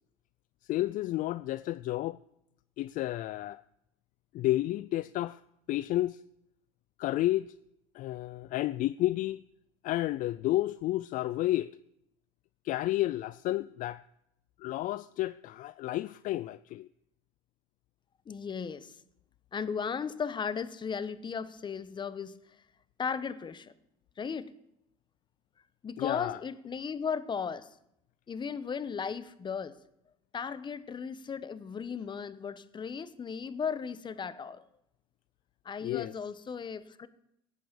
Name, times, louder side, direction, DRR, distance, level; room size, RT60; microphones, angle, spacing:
voice 1, 0.6-2.2 2.8-3.6 4.3-5.4 5.7-6.2 7.0-7.5 7.9-9.4 9.8-11.7 12.6-14.0 14.6-16.9 26.0-26.4 35.8-36.1, left 15 dB, 55° left, 0.4 m, -31 dB
voice 2, 18.3-18.9 19.5-22.4 23.0-23.7 24.2-24.5 25.8-27.7 28.3-29.7 30.3-34.6 35.6-37.1, left 6 dB, 30° left, 1.0 m, -36 dB
17.5 x 8.4 x 6.8 m
supercardioid pair, 100°, 17 cm